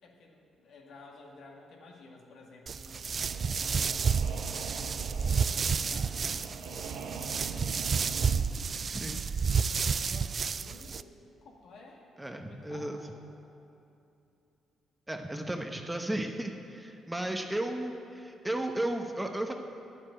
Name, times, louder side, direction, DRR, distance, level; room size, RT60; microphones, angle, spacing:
voice 1, 0.0-7.1 8.9-13.4, left 3 dB, 70° left, 0 dB, 2.0 m, -53 dB
sound 1, 2.7-11.0, right 6 dB, 45° right, 0.3 m, -30 dB
sound 2, 3.2-8.4, right 5 dB, 90° right, 1.0 m, -42 dB
voice 2, 8.9-9.3 12.2-13.0 15.1-19.5, right 1 dB, 10° right, 4 dB, 1.0 m, -34 dB
10.5 x 7.9 x 8.9 m, 2.8 s
cardioid pair, 90°, 0 cm